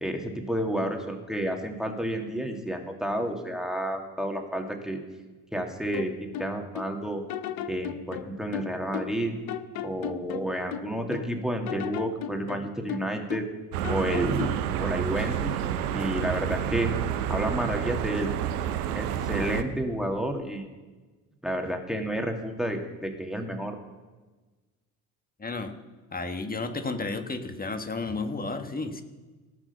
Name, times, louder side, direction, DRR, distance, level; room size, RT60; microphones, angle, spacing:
voice 1, 0.0-5.0 5.5-7.2 7.7-9.3 9.8-13.5 13.9-14.5 14.8-15.6 15.9-16.9 17.3-18.3 18.9-20.7 21.4-23.8, equal, ahead, 3 dB, 2.1 m, -30 dB
sound 1, 5.9-6.9 7.3-9.2 9.5-11.3 11.7-13.6 13.8-14.7, left 9 dB, 50° left, 0.9 m, -36 dB
sound 2, 13.7-19.6, right 10 dB, 80° right, 0.9 m, -29 dB
voice 2, 25.4-25.7 26.1-29.0, left 3 dB, 20° left, 7 dB, 1.5 m, -32 dB
17.5 x 6.1 x 6.9 m, 1.3 s
hypercardioid pair, 55°, 45 cm